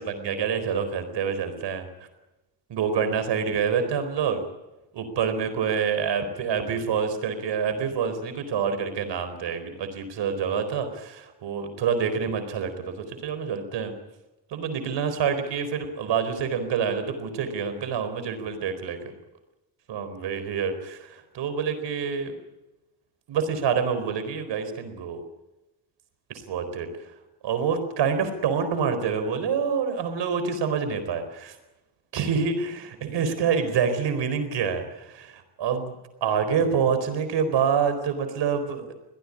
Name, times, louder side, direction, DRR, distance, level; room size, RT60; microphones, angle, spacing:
voice 1, 0.0-1.9 2.7-4.4 4.9-14.0 14.5-19.0 19.9-22.3 23.3-25.2 26.3-26.9 27.4-31.6 32.1-36.0 36.2-38.9, right 6 dB, 80° right, 9 dB, 4.3 m, -27 dB
22.5 x 18.0 x 9.8 m, 1.0 s
cardioid pair, 70°, 42 cm